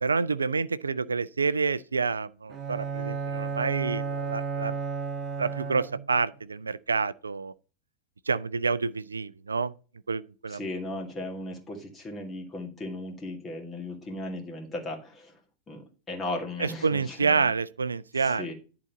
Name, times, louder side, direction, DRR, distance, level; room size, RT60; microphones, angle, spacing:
voice 1, 0.0-4.8 5.4-7.5 8.3-9.7 10.1-10.6 16.6-18.5, right 4 dB, 75° right, 0.4 m, -28 dB
Bowed string instrument, 2.5-6.2, right 5 dB, 25° right, 1.1 m, -33 dB
voice 2, 10.5-15.3 15.7-17.5 18.2-18.5, left 2 dB, 20° left, 2.2 m, -36 dB
10.5 x 3.9 x 5.6 m
figure-of-eight pair, 90°, 0 cm